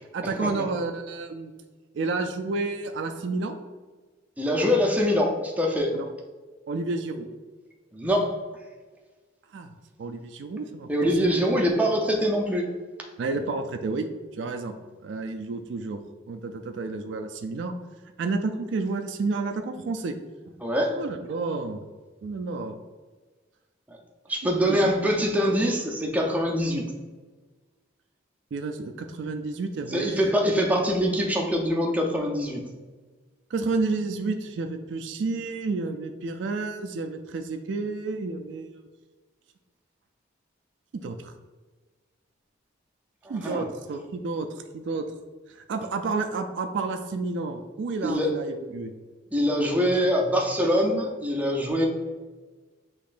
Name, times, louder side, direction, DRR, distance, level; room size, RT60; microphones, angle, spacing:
voice 1, 0.1-1.5 1.9-3.6 5.9-6.1 6.7-7.3 9.5-9.7 10.0-11.3 13.2-14.1 14.4-14.7 15.0-16.0 16.3-17.7 18.2-20.2 21.0-21.8 22.2-22.8 24.4-24.8 28.5-30.3 33.5-38.7 40.9-41.3 43.3-44.5 44.7-45.0 45.5-48.9, right 3 dB, 65° right, 6 dB, 0.3 m, -30 dB
voice 2, 4.4-5.9 7.9-8.3 10.9-12.7 20.6-20.9 23.9-24.0 24.3-26.8 29.9-32.6 43.2-43.7 48.0-48.3 49.3-51.9, equal, 10° right, -1 dB, 0.6 m, -24 dB
6.5 x 3.1 x 2.5 m, 1.3 s
head